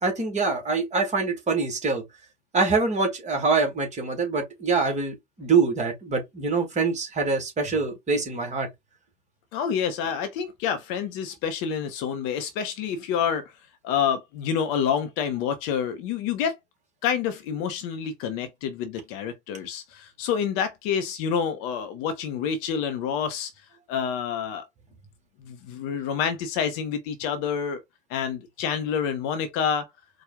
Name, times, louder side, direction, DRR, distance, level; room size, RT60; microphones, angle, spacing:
voice 1, 0.0-2.0 2.5-8.7, right 4 dB, 20° right, 1.6 m, -24 dB
voice 2, 9.5-13.5 13.8-16.6 17.0-23.5 23.9-24.6 25.4-27.8 28.1-29.9, left 7 dB, 40° left, 0.7 m, -28 dB
4.3 x 2.4 x 3.6 m
figure-of-eight pair, 85°, 36 cm